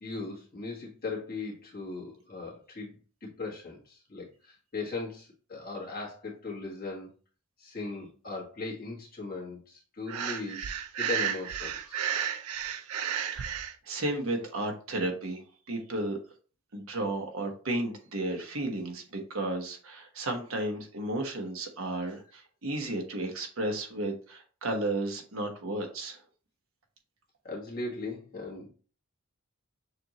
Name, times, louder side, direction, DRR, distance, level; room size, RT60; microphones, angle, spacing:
voice 1, 0.0-2.9 3.2-7.1 7.6-10.7 11.0-12.0 27.4-28.7, left 3 dB, 40° left, -3 dB, 1.6 m, -38 dB
Breathing, 10.1-13.7, right 8 dB, 90° right, 0.5 m, -32 dB
voice 2, 12.1-12.6 12.9-16.2 16.7-26.2, right 1 dB, 65° right, 3 dB, 1.1 m, -34 dB
6.6 x 2.6 x 3.0 m, 0.38 s
head